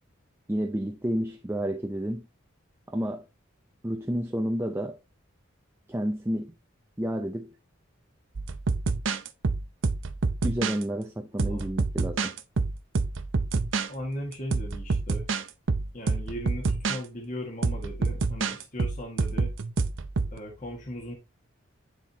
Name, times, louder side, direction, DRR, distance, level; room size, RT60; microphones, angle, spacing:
voice 1, 0.5-2.3 2.9-3.3 3.8-5.0 5.9-6.6 7.0-7.5 10.4-12.4, equal, 10° right, 0.5 m, -30 dB
sound 1, 8.4-10.8 11.4-13.9 14.3-17.0 17.6-20.4, right 3 dB, 70° right, 0.7 m, -27 dB
voice 2, 11.3-11.6 13.9-15.3 15.9-19.5 20.3-21.1, equal, 40° left, 1.6 m, -38 dB
10.0 x 4.4 x 2.9 m
head